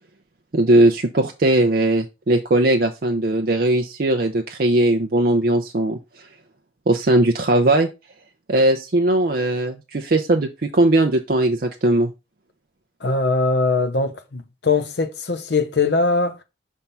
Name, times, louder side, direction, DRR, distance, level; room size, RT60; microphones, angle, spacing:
voice 1, 0.5-6.0 6.9-7.9 8.5-12.1, right 1 dB, 50° right, 0.6 m, -19 dB
voice 2, 13.0-16.4, left 3 dB, 60° left, 0.8 m, -21 dB
5.8 x 3.6 x 5.5 m
head